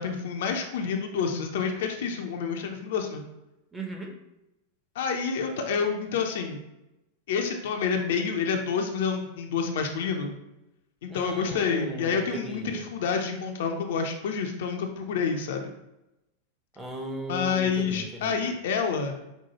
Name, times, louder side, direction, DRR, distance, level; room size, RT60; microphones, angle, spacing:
voice 1, 0.0-3.2 5.0-6.6 7.3-10.3 11.0-15.7 17.3-19.2, left 6 dB, 55° left, 4 dB, 0.5 m, -28 dB
voice 2, 3.7-4.2 11.1-12.9 16.8-18.5, right 1 dB, 10° right, 2 dB, 0.7 m, -37 dB
5.4 x 2.2 x 2.9 m, 0.92 s
figure-of-eight pair, 90°, 0 cm